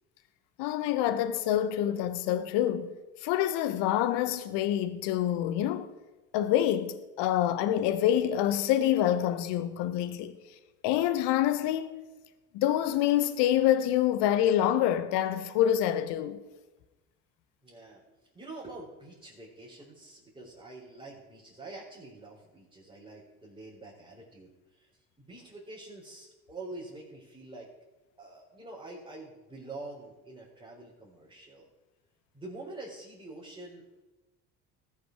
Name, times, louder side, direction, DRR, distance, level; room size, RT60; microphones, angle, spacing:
voice 1, 0.6-2.9 3.2-5.9 6.3-10.4 10.8-12.0 12.5-16.4, left 11 dB, 65° left, 1.1 m, -26 dB
voice 2, 17.6-24.9 25.2-27.7 28.2-31.7 32.3-33.8, right 2 dB, 10° right, 4.6 m, -46 dB
19.5 x 7.1 x 4.8 m
hypercardioid pair, 60°, 45 cm